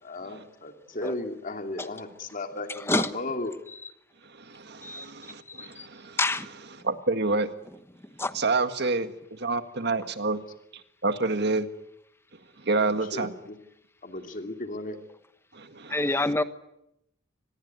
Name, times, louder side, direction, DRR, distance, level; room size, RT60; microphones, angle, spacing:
voice 1, 0.0-3.5 12.8-13.6 14.0-15.0, left 2 dB, 45° left, 5 dB, 2.8 m, -35 dB
voice 2, 2.7-3.1 4.8-5.1 5.5-5.9 6.2-6.5 8.0-8.4 15.9-16.4, left 2 dB, 15° left, 11 dB, 1.2 m, -27 dB
voice 3, 4.3-6.2 6.8-7.5 8.3-10.4 11.0-11.7 12.6-13.3 15.5-16.0, right 3 dB, 60° right, 9 dB, 1.8 m, -28 dB
26.0 x 21.0 x 9.5 m, 0.83 s
head